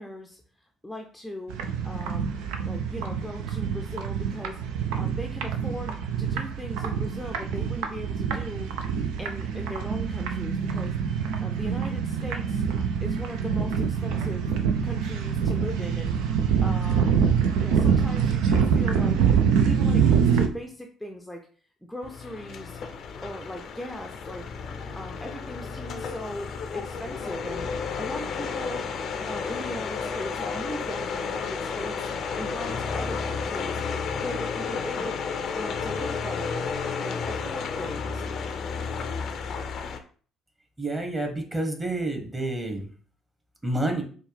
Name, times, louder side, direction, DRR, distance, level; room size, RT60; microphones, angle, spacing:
voice 1, 0.0-1.6 1.8-2.3 2.6-4.6 5.0-8.7 9.2-12.6 13.0-14.5 14.8-16.2 16.6-17.2 17.6-19.2 19.5-21.5 21.8-22.8 23.2-24.5 25.0-27.7 28.0-28.8 29.3-32.1 32.4-33.8 34.1-35.2 35.5-36.7 37.0-38.2, equal, 5° left, 2 dB, 0.6 m, -38 dB
sound 1, 1.5-20.5, right 7 dB, 70° right, 0.4 m, -25 dB
sound 2, 22.0-40.0, left 5 dB, 55° left, 0.5 m, -32 dB
voice 2, 40.8-42.9 43.6-44.0, right 2 dB, 20° right, 3 dB, 1.2 m, -29 dB
4.3 x 2.4 x 3.2 m, 0.42 s
figure-of-eight pair, 50°, 0 cm